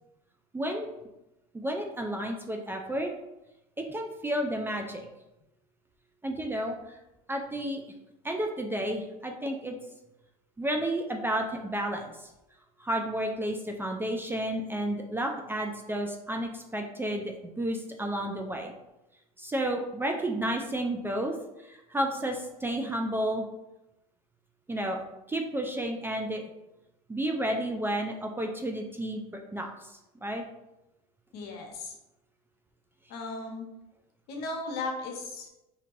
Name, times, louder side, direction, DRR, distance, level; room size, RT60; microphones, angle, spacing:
voice 1, 0.5-0.9 1.5-3.1 3.8-5.1 6.2-7.0 7.3-7.8 8.2-9.8 10.6-12.3 12.8-18.7 19.4-23.5 24.7-26.4 27.1-30.4, right 1 dB, 10° right, 2 dB, 0.4 m, -32 dB
voice 2, 31.3-31.9 33.1-33.7 34.3-35.5, left 3 dB, 55° left, 2 dB, 1.0 m, -36 dB
4.4 x 2.8 x 2.6 m, 0.94 s
hypercardioid pair, 85°, 20 cm